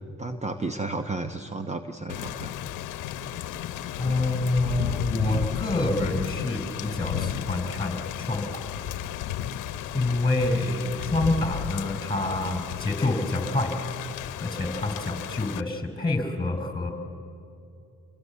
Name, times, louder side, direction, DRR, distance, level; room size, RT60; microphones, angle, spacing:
voice 1, 0.2-2.5, right 3 dB, 25° right, 7 dB, 1.1 m, -32 dB
Thunder / Rain, 2.1-15.6, left 10 dB, 90° left, 0.9 m, -33 dB
voice 2, 4.0-8.6 9.9-13.8 14.4-16.9, left 2 dB, 15° left, 6 dB, 5.1 m, -27 dB
27.5 x 22.5 x 8.4 m, 2.7 s
cardioid pair, 90°, 30 cm